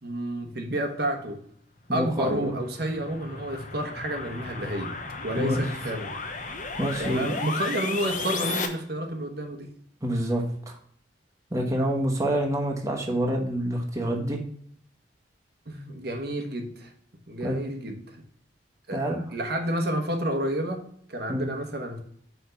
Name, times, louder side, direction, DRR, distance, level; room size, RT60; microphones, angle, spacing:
voice 1, 0.0-1.4 1.9-4.9 5.2-6.2 7.0-9.7 15.7-16.9 17.3-18.0 18.9-19.0 19.3-22.0, right 1 dB, 60° right, 4 dB, 1.1 m, -30 dB
voice 2, 1.9-2.5 5.4-5.6 6.8-7.4 10.0-10.8 11.5-14.4 17.4-17.6 18.9-19.2 21.3-21.5, right 1 dB, 20° right, 1 dB, 1.1 m, -27 dB
sound 1, 2.1-8.7, left 4 dB, 45° left, 1.0 m, -34 dB
5.8 x 4.6 x 5.5 m, 0.62 s
head